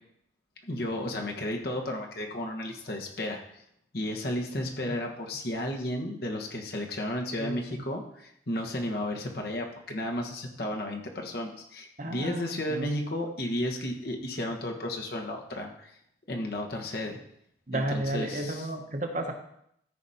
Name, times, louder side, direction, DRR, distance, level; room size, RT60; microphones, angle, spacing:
voice 1, 0.6-3.6 3.9-16.0 16.3-17.2 17.7-18.7, left 1 dB, 55° left, 1 dB, 1.5 m, -33 dB
voice 2, 4.6-5.0 7.4-7.8 12.0-12.9 17.7-19.3, right 1 dB, 45° right, 4 dB, 1.2 m, -33 dB
13.5 x 5.1 x 4.3 m, 0.73 s
head